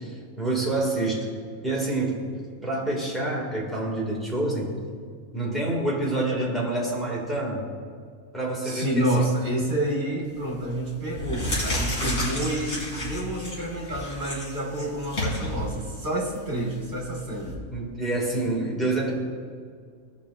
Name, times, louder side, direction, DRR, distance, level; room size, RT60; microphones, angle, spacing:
voice 1, 0.4-1.3 1.6-2.4 2.6-4.8 5.3-7.7 8.3-9.1 17.7-19.1, right 2 dB, ahead, -4 dB, 1.9 m, -27 dB
voice 2, 8.6-17.6, right 1 dB, 50° right, -1 dB, 2.1 m, -28 dB
sound 1, 10.3-10.6 11.0-17.5, left 1 dB, 60° left, 2.8 m, -31 dB
16.5 x 5.6 x 2.5 m, 2.1 s
omnidirectional pair, 1.5 m